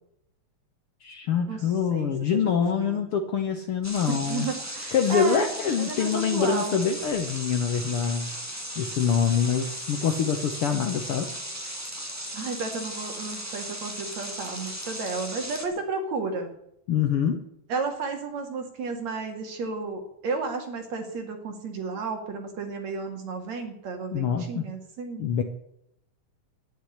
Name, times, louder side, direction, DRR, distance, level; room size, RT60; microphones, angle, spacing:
voice 1, 1.0-4.4 4.9-8.3 8.8-11.3 16.9-17.4 24.1-24.6 25.2-25.4, left 7 dB, 60° left, 5 dB, 1.5 m, -25 dB
voice 2, 1.9-3.0 4.1-5.5 5.8-6.8 12.3-16.5 17.7-25.3, right 4 dB, 60° right, 4 dB, 3.4 m, -33 dB
sound 1, 3.8-15.7, right 1 dB, 10° right, 1.0 m, -36 dB
11.5 x 10.0 x 9.8 m, 0.76 s
omnidirectional pair, 3.6 m